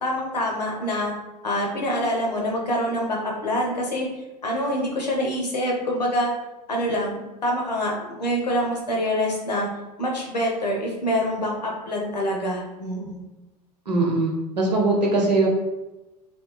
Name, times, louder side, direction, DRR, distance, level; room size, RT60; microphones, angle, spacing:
voice 1, 0.0-1.1 1.4-4.1 4.4-6.3 6.7-9.7 10.0-13.2, equal, 85° left, -1 dB, 0.8 m, -25 dB
voice 2, 13.9-15.5, right 2 dB, 85° right, -2 dB, 0.8 m, -21 dB
2.7 x 2.2 x 3.0 m, 1.0 s
figure-of-eight pair, 80°, 21 cm